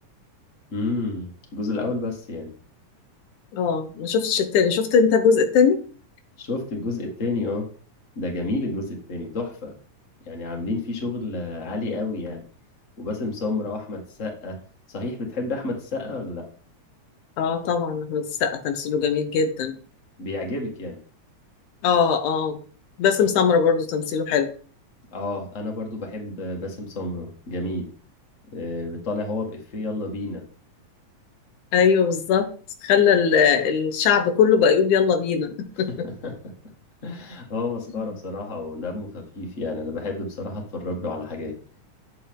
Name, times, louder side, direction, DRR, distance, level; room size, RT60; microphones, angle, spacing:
voice 1, 0.7-2.5 6.4-7.7 8.2-9.7 10.2-12.4 13.0-14.6 14.9-16.4 20.2-21.0 25.1-27.9 28.5-30.4 35.7-36.5 37.0-41.6, left 2 dB, 30° left, 1 dB, 1.9 m, -30 dB
voice 2, 3.5-5.8 17.4-19.8 21.8-22.6 23.0-24.5 31.7-32.5 32.8-35.9, left 6 dB, 85° left, 8 dB, 2.3 m, -20 dB
8.5 x 7.4 x 3.7 m, 0.41 s
omnidirectional pair, 3.4 m